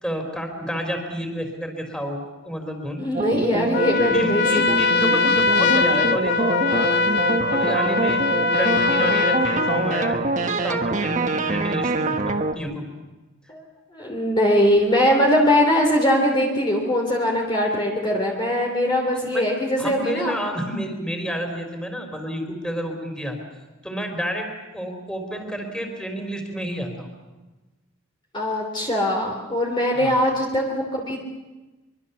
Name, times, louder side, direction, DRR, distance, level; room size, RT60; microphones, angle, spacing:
voice 1, 0.0-3.0 4.1-7.1 7.5-8.2 8.5-12.8 19.2-19.4 19.8-23.4 23.8-24.5 24.7-27.1 29.9-30.2, equal, 5° left, 4 dB, 4.3 m, -30 dB
voice 2, 3.0-4.8 5.1-5.2 13.5-13.6 13.9-20.3 28.3-31.2, left 1 dB, 25° left, 0 dB, 3.1 m, -21 dB
sound 1, 3.1-12.5, right 2 dB, 35° right, 1.5 m, -25 dB
Trumpet, 3.7-10.2, left 4 dB, 55° left, 1.1 m, -22 dB
24.5 x 24.5 x 7.1 m, 1.2 s
head